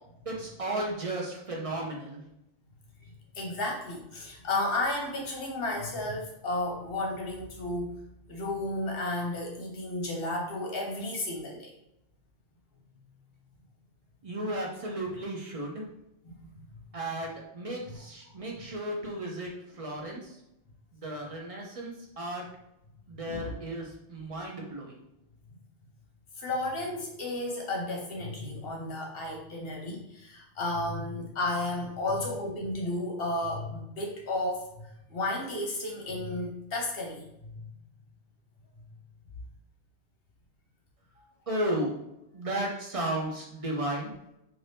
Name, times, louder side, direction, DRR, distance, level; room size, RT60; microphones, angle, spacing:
voice 1, 0.3-2.2 14.2-15.8 16.9-20.4 20.9-22.4 23.1-25.0 41.2-41.9 42.3-44.1, right 1 dB, 45° right, -1 dB, 0.5 m, -34 dB
voice 2, 3.3-8.0 8.3-11.7 16.2-16.3 18.4-18.5 23.3-23.5 26.4-37.5, left 2 dB, 60° left, 0 dB, 0.8 m, -33 dB
2.6 x 2.5 x 3.3 m, 0.85 s
omnidirectional pair, 1.2 m